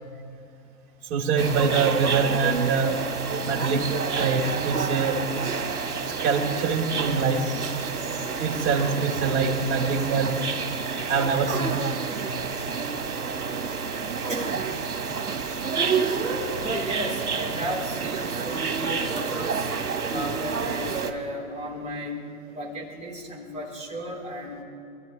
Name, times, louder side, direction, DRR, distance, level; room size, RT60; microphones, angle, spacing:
voice 1, 1.1-3.1 3.4-3.9 4.2-5.2 6.2-7.9 8.4-10.5 11.1-11.8 12.7-14.3 15.8-16.6, right 5 dB, 50° right, 0 dB, 3.9 m, -26 dB
sound 1, 1.4-21.1, right 5 dB, 85° right, 1.7 m, -29 dB
voice 2, 14.3-14.8 16.6-19.7 20.1-22.2 22.5-24.6, right 1 dB, 15° right, -3 dB, 3.8 m, -34 dB
28.5 x 13.5 x 3.3 m, 2.5 s
hypercardioid pair, 120°, 44 cm